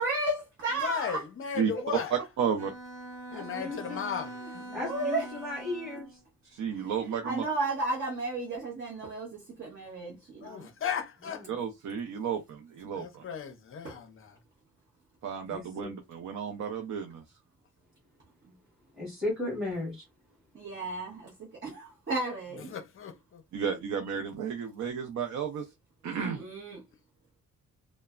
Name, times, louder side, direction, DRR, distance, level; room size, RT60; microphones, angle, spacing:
voice 1, 0.0-1.2 1.7-2.0 4.8-5.3 6.7-6.9 7.2-10.7 13.8-13.9 20.5-21.3 21.6-22.7 26.3-26.8, right 2 dB, 40° right, 0.8 m, -33 dB
voice 2, 0.7-2.1 3.3-4.8 10.4-11.5 12.9-14.4 20.8-20.9 22.5-23.4, left 7 dB, 40° left, 0.5 m, -36 dB
voice 3, 2.4-2.7 6.5-7.4 11.5-13.2 15.2-17.2 23.5-25.7 26.0-26.4, right 7 dB, 65° right, 0.5 m, -32 dB
Bowed string instrument, 2.6-6.2, right 1 dB, 20° right, 1.3 m, -43 dB
voice 4, 3.3-4.0 4.7-6.1 15.5-15.9 19.0-20.0, left 2 dB, ahead, 1.4 m, -35 dB
3.0 x 2.0 x 2.3 m
wide cardioid pair, 170°, 31 cm